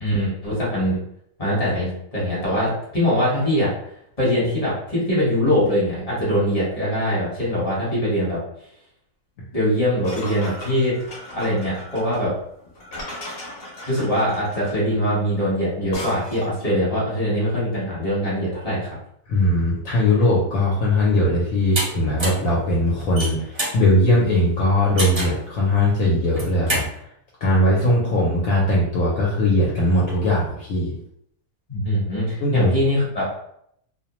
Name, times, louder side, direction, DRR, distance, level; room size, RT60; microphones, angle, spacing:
voice 1, 0.0-1.0 1.4-3.7 4.2-8.4 9.5-10.9 11.3-12.3 13.9-19.0 31.7-33.2, equal, 30° left, -8 dB, 1.0 m, -22 dB
sound 1, 10.0-16.6, left 1 dB, 50° left, 0.8 m, -37 dB
voice 2, 19.3-27.0 27.4-30.9 32.4-32.7, left 1 dB, 70° left, -4 dB, 1.0 m, -20 dB
sound 2, 21.7-21.9 22.2-22.5 23.0-23.8 25.0-25.4 26.2-26.9, right 1 dB, 35° right, 0.4 m, -26 dB
2.5 x 2.1 x 2.9 m, 0.72 s
omnidirectional pair, 1.6 m